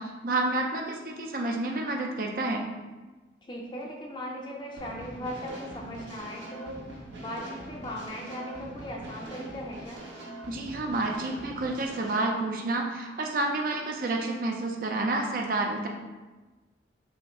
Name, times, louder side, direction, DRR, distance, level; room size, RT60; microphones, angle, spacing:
voice 1, 0.0-2.7 10.5-15.9, right 2 dB, 50° right, 1 dB, 0.5 m, -29 dB
voice 2, 3.5-6.8 7.2-10.0, equal, 25° left, -1 dB, 0.6 m, -38 dB
sound 1, 4.8-12.3, right 1 dB, 90° right, 1.0 m, -43 dB
5.9 x 2.0 x 3.7 m, 1.2 s
head